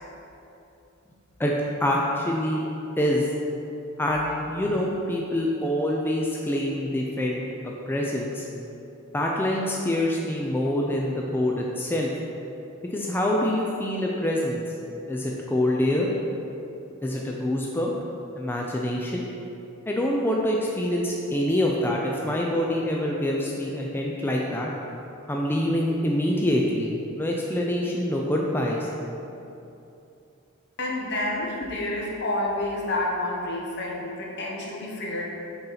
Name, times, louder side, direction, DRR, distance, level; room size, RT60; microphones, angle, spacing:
voice 1, 1.8-2.6 3.0-3.3 4.0-8.4 9.1-12.1 12.9-14.6 15.1-16.1 17.0-18.0 18.4-19.3 19.9-24.7 25.3-28.9, left 1 dB, 10° left, -2 dB, 0.4 m, -25 dB
voice 2, 30.8-35.2, left 1 dB, 55° left, -2 dB, 1.0 m, -29 dB
6.7 x 4.2 x 3.9 m, 2.8 s
head